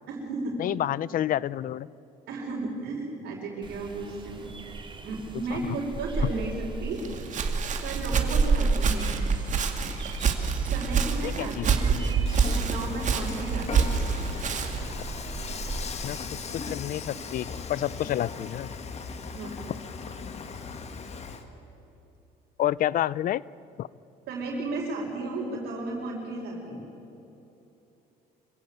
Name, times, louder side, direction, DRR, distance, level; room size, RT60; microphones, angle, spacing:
voice 1, 0.1-0.6 2.3-4.5 5.0-7.0 7.8-9.1 10.6-12.0 12.5-13.9 19.3-19.6 24.3-26.8, right 2 dB, 75° right, -5 dB, 5.0 m, -34 dB
voice 2, 0.6-1.9 5.5-5.6 11.2-11.7 16.0-16.2 16.7-18.7 22.6-23.4 23.8-23.9, left 12 dB, 55° left, 21 dB, 0.5 m, -29 dB
sound 1, 3.6-15.9, right 3 dB, 30° right, 2.5 m, -33 dB
Walk footsteps, 7.0-14.9, right 6 dB, 45° right, 2.3 m, -27 dB
Dishes pots and pans / Frying (food), 12.3-21.4, left 5 dB, 40° left, 1.9 m, -38 dB
25.5 x 16.0 x 9.0 m, 3.0 s
cardioid pair, 110°, 17 cm